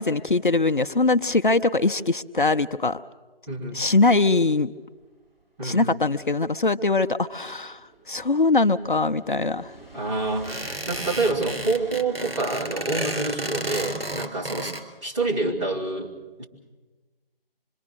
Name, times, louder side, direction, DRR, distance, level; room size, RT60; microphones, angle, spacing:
voice 1, 0.0-3.0 3.7-4.7 5.6-7.8 8.1-9.7, left 3 dB, 55° left, 11 dB, 0.7 m, -22 dB
voice 2, 3.5-3.8 5.6-6.0 9.9-14.7 15.0-16.1 16.4-16.5, right 3 dB, 30° right, -5 dB, 3.7 m, -27 dB
sound 1, 4.9-12.0, right 3 dB, ahead, 1.5 m, -48 dB
sound 2, 10.4-14.8, right 1 dB, 85° right, 3.4 m, -32 dB
26.0 x 23.0 x 6.7 m, 1.3 s
figure-of-eight pair, 160°, 29 cm